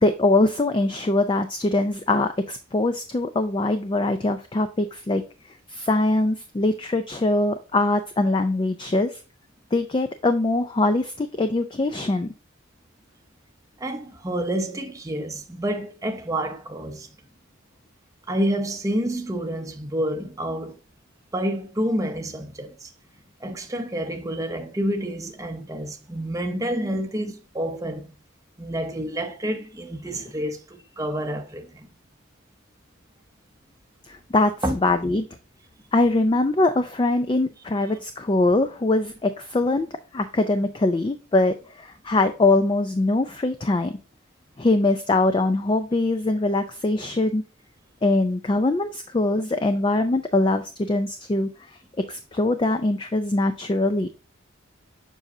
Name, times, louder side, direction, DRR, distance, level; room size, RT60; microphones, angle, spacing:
voice 1, 0.0-5.2 5.7-9.2 9.7-12.3 34.1-34.5 34.8-35.3 35.9-44.0 44.6-47.4 48.0-51.5 52.1-54.1, left 2 dB, 25° left, 0.4 m, -22 dB
voice 2, 13.8-17.1 18.3-20.8 21.3-22.9 23.4-28.1 28.6-31.9 34.6-34.8, right 1 dB, 15° right, 0.7 m, -28 dB
7.4 x 5.3 x 2.7 m
head